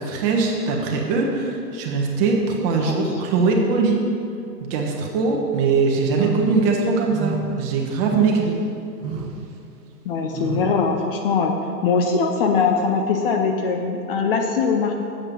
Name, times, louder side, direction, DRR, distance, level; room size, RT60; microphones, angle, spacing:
voice 1, 0.0-4.1 4.6-8.6, right 4 dB, 35° right, 1 dB, 1.4 m, -21 dB
sound 1, 6.1-6.7 7.1-7.6 8.0-8.5 9.0-9.4 10.3-10.8, right 5 dB, 20° right, 0.6 m, -29 dB
voice 2, 10.0-11.5 11.8-14.9, left 5 dB, 35° left, 3 dB, 0.6 m, -21 dB
7.7 x 7.4 x 5.4 m, 2.6 s
hypercardioid pair, 130°, 50 cm